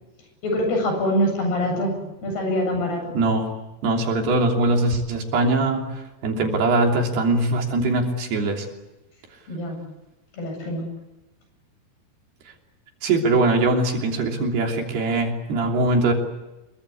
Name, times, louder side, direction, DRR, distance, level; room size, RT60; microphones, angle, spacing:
voice 1, 0.4-3.1 9.5-9.8 10.3-10.9, equal, 60° left, 3 dB, 10.0 m, -24 dB
voice 2, 3.2-3.5 3.8-8.7 13.0-16.1, right 2 dB, 65° right, 2 dB, 5.1 m, -22 dB
26.5 x 23.5 x 8.5 m, 1.0 s
omnidirectional pair, 5.1 m